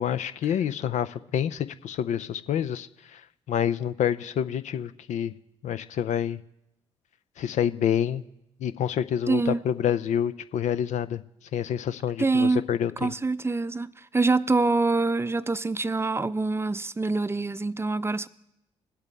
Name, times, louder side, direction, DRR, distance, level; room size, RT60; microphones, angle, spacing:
voice 1, 0.0-3.2 3.5-5.3 5.6-6.4 7.4-8.2 8.6-11.2 11.5-13.1, left 9 dB, 55° left, 0.5 m, -27 dB
voice 2, 9.3-9.6 12.2-12.6 13.0-18.3, right 3 dB, 15° right, 0.5 m, -25 dB
20.5 x 8.1 x 3.4 m
hypercardioid pair, 40°, 14 cm